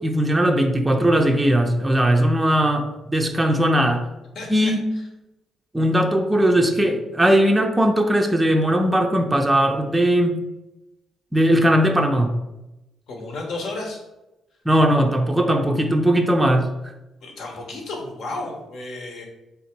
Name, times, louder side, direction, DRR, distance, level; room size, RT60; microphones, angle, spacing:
voice 1, 0.0-4.0 4.5-4.8 5.7-10.4 11.3-12.3 14.7-16.7, equal, 10° right, 3 dB, 0.4 m, -19 dB
voice 2, 4.3-4.7 13.1-14.0 17.2-19.3, left 2 dB, 70° left, 1 dB, 1.0 m, -32 dB
3.5 x 2.7 x 4.4 m, 0.96 s
cardioid pair, 90°, 0 cm